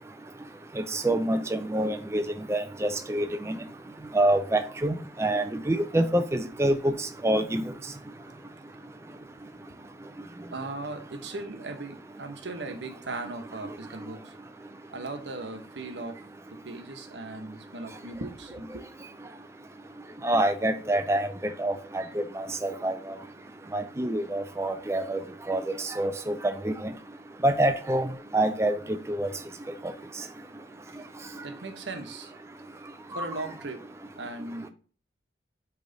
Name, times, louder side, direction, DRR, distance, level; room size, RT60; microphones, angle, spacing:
voice 1, 0.9-2.2 2.5-3.6 4.1-7.6 20.2-21.3 21.6-23.2 23.7-25.2 25.5-25.6 26.0-26.7 27.4-28.1 28.3-28.7 29.1-29.3 33.1-33.2, right 1 dB, 15° right, 7 dB, 0.4 m, -26 dB
voice 2, 10.5-14.3 14.9-16.2 16.5-18.8 30.9-31.1 31.4-32.4 33.1-33.8 34.2-34.7, right 2 dB, 80° right, 7 dB, 1.1 m, -38 dB
8.4 x 3.3 x 4.0 m, 0.40 s
head